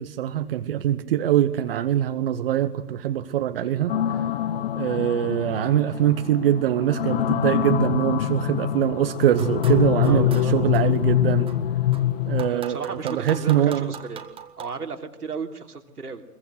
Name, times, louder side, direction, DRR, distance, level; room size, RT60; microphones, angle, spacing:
voice 1, 0.0-4.2 4.7-11.5 12.3-13.9, right 11 dB, 40° right, 10 dB, 1.3 m, -23 dB
sound 1, 3.9-12.5, left 11 dB, 40° left, 0.9 m, -24 dB
sound 2, 9.3-11.0 11.5-14.6, right 8 dB, 10° right, 1.6 m, -40 dB
voice 2, 10.0-10.5 12.5-14.3 14.6-16.2, right 5 dB, 75° right, 5 dB, 3.3 m, -33 dB
23.5 x 22.5 x 8.1 m, 0.80 s
figure-of-eight pair, 120°, 46 cm